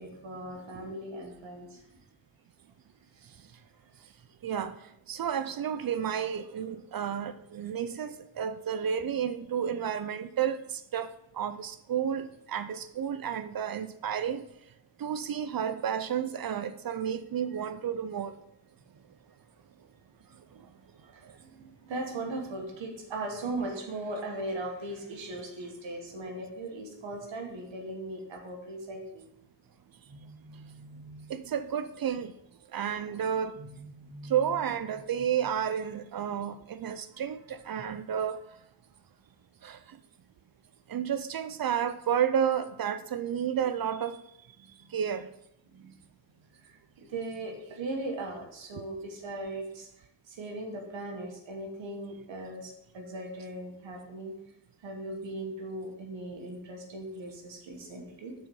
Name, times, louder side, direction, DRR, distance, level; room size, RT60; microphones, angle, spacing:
voice 1, 0.0-1.8 20.5-20.6 21.1-29.3 30.1-31.6 33.6-34.6 44.6-44.9 45.7-46.0 46.6-54.3 54.8-58.3, right 2 dB, 85° right, 1.6 m, -39 dB
voice 2, 4.4-14.4 15.0-18.3 20.5-20.6 21.2-21.4 31.3-32.3 32.7-33.6 34.2-38.4 39.6-40.0 40.9-44.2 44.9-45.3, right 8 dB, 55° right, 0.5 m, -31 dB
6.4 x 4.5 x 5.4 m
cardioid pair, 75°, 44 cm